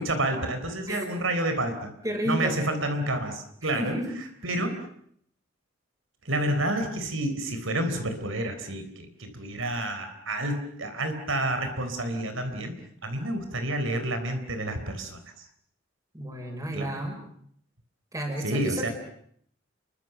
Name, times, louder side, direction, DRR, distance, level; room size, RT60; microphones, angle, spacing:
voice 1, 0.0-1.9 2.2-4.0 4.4-4.7 6.2-12.8 13.0-15.4 16.7-17.0 18.4-18.9, right 1 dB, 80° right, 7 dB, 4.0 m, -29 dB
voice 2, 2.0-2.6 3.6-4.1 16.1-17.2 18.1-18.9, right 1 dB, 15° right, 4 dB, 6.2 m, -31 dB
29.5 x 23.5 x 6.9 m, 0.66 s
head